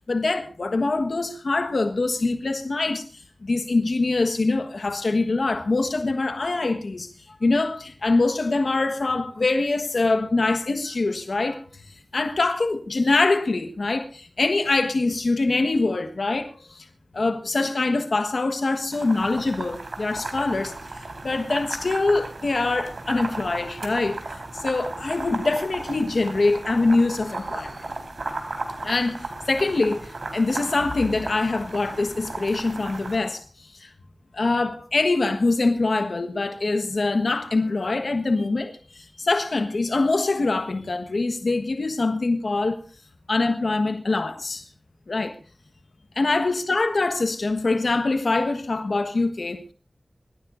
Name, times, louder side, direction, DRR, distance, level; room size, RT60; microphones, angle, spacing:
voice 1, 0.1-7.1 7.4-11.8 12.1-16.9 17.1-27.8 28.8-33.9 34.3-42.8 43.3-44.7 45.1-45.4 46.2-49.7, left 3 dB, 80° left, 1.4 m, -24 dB
sound 1, 18.9-33.2, right 2 dB, 80° right, 4.2 m, -35 dB
25.0 x 15.0 x 2.6 m
wide cardioid pair, 75°, 0 cm